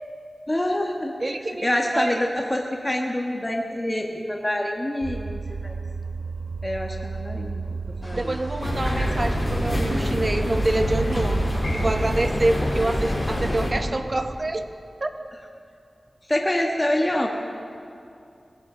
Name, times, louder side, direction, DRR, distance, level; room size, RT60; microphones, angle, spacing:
voice 1, 0.5-1.1 1.6-5.8 6.6-8.4 16.3-17.3, left 1 dB, 20° left, 1 dB, 1.3 m, -26 dB
voice 2, 1.2-1.7 1.9-2.2 8.1-14.7 15.0-15.1, right 2 dB, 45° right, 7 dB, 1.0 m, -26 dB
sound 1, 5.0-12.3, right 4 dB, 65° right, 0.5 m, -33 dB
sound 2, 8.0-13.7, equal, ahead, 4.7 m, -43 dB
sound 3, 8.6-13.7, equal, 50° left, 3.3 m, -25 dB
21.0 x 15.0 x 3.8 m, 2.5 s
cardioid pair, 50°, 0 cm